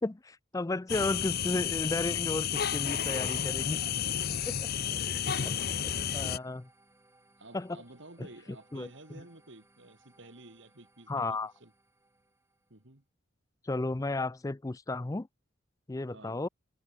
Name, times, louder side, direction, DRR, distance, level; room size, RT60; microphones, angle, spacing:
voice 1, 0.0-3.8 4.5-4.7 5.4-5.7 6.1-6.7 7.5-7.8 8.7-8.9 11.1-11.5 13.6-15.3 15.9-16.5, left 2 dB, 15° left, 0.4 m, -33 dB
sound 1, 0.9-6.4, left 9 dB, 45° left, 0.7 m, -31 dB
sound 2, 3.5-12.9, right 2 dB, 10° right, 5.3 m, -64 dB
voice 2, 4.6-5.9 6.3-6.5 7.4-11.7 12.7-13.0 16.1-16.4, right 2 dB, 55° right, 2.2 m, -53 dB
head